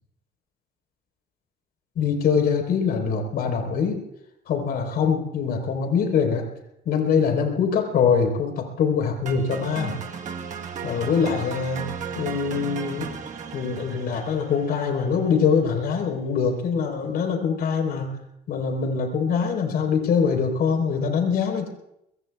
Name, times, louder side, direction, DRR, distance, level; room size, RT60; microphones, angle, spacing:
voice 1, 2.0-4.0 4.5-6.4 6.8-10.0 10.8-11.9 12.1-13.1 13.5-18.1 18.5-21.7, left 6 dB, 65° left, 2 dB, 4.1 m, -23 dB
sound 1, 9.3-15.4, right 6 dB, 45° right, 1.3 m, -35 dB
24.0 x 22.0 x 2.4 m, 0.82 s
cardioid pair, 110°, 17 cm